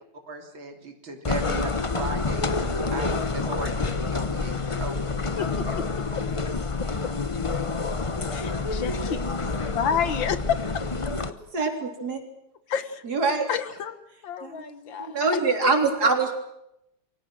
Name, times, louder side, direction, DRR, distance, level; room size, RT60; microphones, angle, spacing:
voice 1, 0.3-5.3 5.7-5.8 7.0-7.2, right 3 dB, 90° right, 4 dB, 4.1 m, -37 dB
sound 1, 1.2-11.3, left 4 dB, 30° left, 0.5 m, -28 dB
voice 2, 5.4-6.2 8.3-9.4 9.7-10.8 12.7-13.0 13.5-14.0 14.2-15.2 15.6-15.8, left 7 dB, 75° left, 11 dB, 2.1 m, -30 dB
voice 3, 11.3-12.2 13.0-13.5 14.4-14.6 15.0-16.4, right 4 dB, 50° right, 4 dB, 4.1 m, -24 dB
27.5 x 24.0 x 6.3 m, 0.83 s
omnidirectional pair, 2.1 m